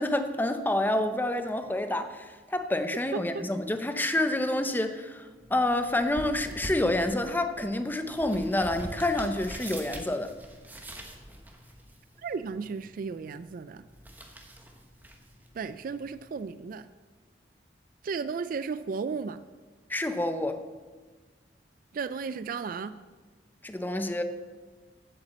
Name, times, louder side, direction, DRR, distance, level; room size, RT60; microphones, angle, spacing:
voice 1, 0.0-5.2 5.5-10.3 19.9-20.6 23.6-24.2, left 1 dB, 10° left, 8 dB, 0.7 m, -28 dB
voice 2, 3.1-3.4 12.2-13.8 15.5-16.9 18.0-19.4 21.9-23.0, right 5 dB, 50° right, 13 dB, 0.3 m, -34 dB
sound 1, 5.4-16.4, right 1 dB, 10° right, 1.1 m, -45 dB
8.2 x 7.9 x 7.4 m, 1.3 s
head